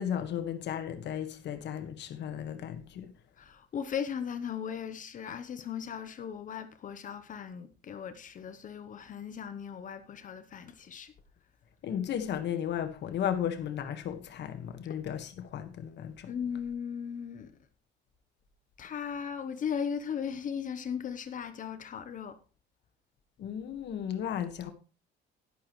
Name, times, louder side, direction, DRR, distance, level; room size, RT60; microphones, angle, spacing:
voice 1, 0.0-3.1 11.8-16.3 23.4-24.7, left 9 dB, 60° left, 1.5 m, -35 dB
voice 2, 3.4-11.1 16.3-17.6 18.8-22.4, left 7 dB, 40° left, 0.8 m, -37 dB
11.5 x 11.0 x 3.1 m
cardioid pair, 145°, 20 cm